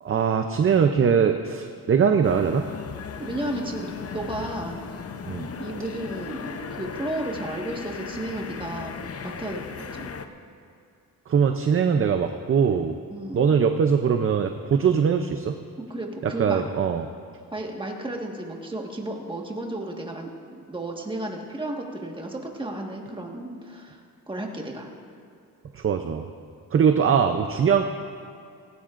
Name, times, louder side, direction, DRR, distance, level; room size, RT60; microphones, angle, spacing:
voice 1, 0.0-2.7 5.3-5.5 11.3-13.0 13.3-15.6 16.2-17.1 25.7-26.2 26.7-27.8, right 7 dB, 35° right, 6 dB, 0.5 m, -21 dB
sound 1, 2.2-10.3, left 6 dB, 40° left, 0.7 m, -37 dB
voice 2, 3.2-4.8 5.6-8.9 9.2-9.6 9.9-10.1 13.1-13.4 15.8-16.6 17.5-20.3 20.7-24.0 24.3-24.9, right 1 dB, 15° right, 0 dB, 1.5 m, -33 dB
18.0 x 16.5 x 2.5 m, 2.5 s
wide cardioid pair, 135°, 36 cm